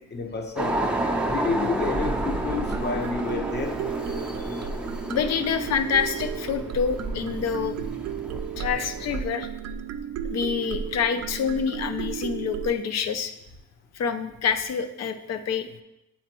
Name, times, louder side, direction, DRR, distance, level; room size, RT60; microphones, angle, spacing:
voice 1, 0.1-0.8 1.3-3.7, left 4 dB, 35° left, 4 dB, 1.0 m, -29 dB
sound 1, 0.6-9.2, right 1 dB, 5° right, 0.6 m, -30 dB
sound 2, 2.4-12.8, right 8 dB, 60° right, 0.4 m, -34 dB
voice 2, 5.1-7.8 8.6-9.5 10.3-13.3 13.9-15.8, left 6 dB, 60° left, 9 dB, 0.6 m, -27 dB
8.1 x 4.3 x 3.0 m, 0.88 s
cardioid pair, 90°, 30 cm